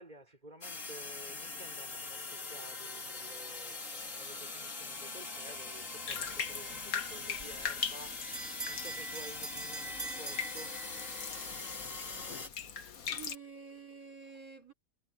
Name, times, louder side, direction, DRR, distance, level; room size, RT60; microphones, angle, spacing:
voice 1, 0.0-8.2 8.7-10.8, right 1 dB, 30° right, 5.5 m, -52 dB
sound 1, 0.6-12.5, left 3 dB, 65° left, 3.0 m, -42 dB
Bathtub (filling or washing), 6.1-13.4, left 7 dB, 80° left, 1.7 m, -41 dB
Bell, 7.4-11.5, right 4 dB, 45° right, 3.6 m, -44 dB
voice 2, 13.1-14.7, right 6 dB, 75° right, 5.1 m, -49 dB
omnidirectional pair, 1.5 m